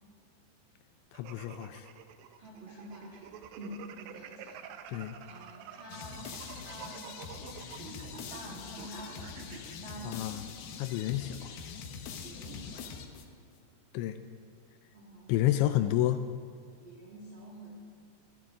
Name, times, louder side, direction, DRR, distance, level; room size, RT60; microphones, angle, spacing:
voice 1, 1.1-1.9 4.9-5.2 10.1-10.4 10.8-11.4 13.9-14.2 15.3-16.2, left 13 dB, 90° left, 9 dB, 2.9 m, -29 dB
sound 1, 1.1-9.8, right 8 dB, 90° right, 3.1 m, -49 dB
voice 2, 2.4-7.1 7.8-10.2 12.1-12.9 14.9-15.3 16.8-17.8, right 1 dB, 55° right, -4 dB, 1.4 m, -48 dB
sound 2, 5.9-13.5, left 6 dB, 70° left, 2.5 m, -44 dB
22.5 x 13.5 x 3.7 m, 2.1 s
omnidirectional pair, 5.1 m